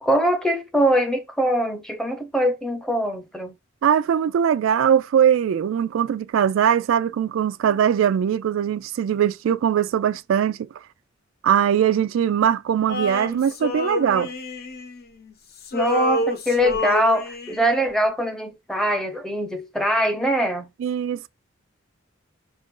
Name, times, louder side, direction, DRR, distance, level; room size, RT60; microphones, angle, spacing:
voice 1, 0.0-3.6 15.7-20.7, equal, 5° left, 0.7 m, -22 dB
voice 2, 3.8-10.7 11.4-14.3 20.8-21.3, right 9 dB, 80° right, 0.3 m, -21 dB
Male singing, 12.9-15.3 15.6-17.8, left 1 dB, 50° left, 0.7 m, -27 dB
5.3 x 2.5 x 3.7 m
head